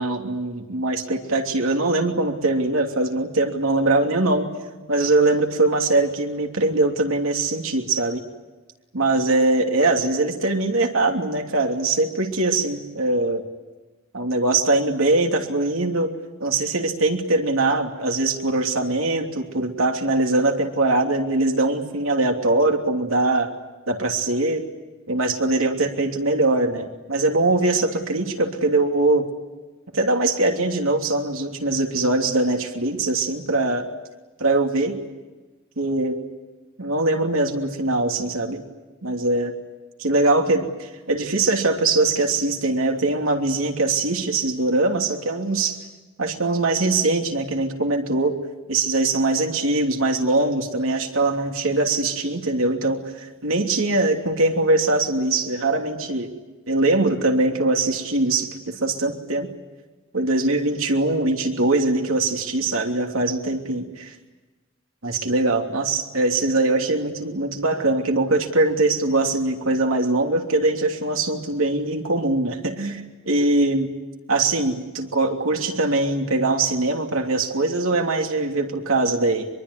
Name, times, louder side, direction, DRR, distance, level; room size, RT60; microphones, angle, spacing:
voice 1, 0.0-4.5 4.9-8.2 8.9-13.4 14.1-16.1 16.4-23.5 23.9-24.6 25.1-29.3 29.9-33.8 34.4-35.0 35.8-36.2 36.8-38.6 39.0-39.5 40.0-45.8 46.2-48.4 48.7-56.3 56.7-59.5 60.1-64.1 65.0-73.9 74.3-79.5, right 2 dB, 80° right, 3 dB, 2.9 m, -22 dB
24.0 x 23.0 x 9.7 m, 1.2 s
head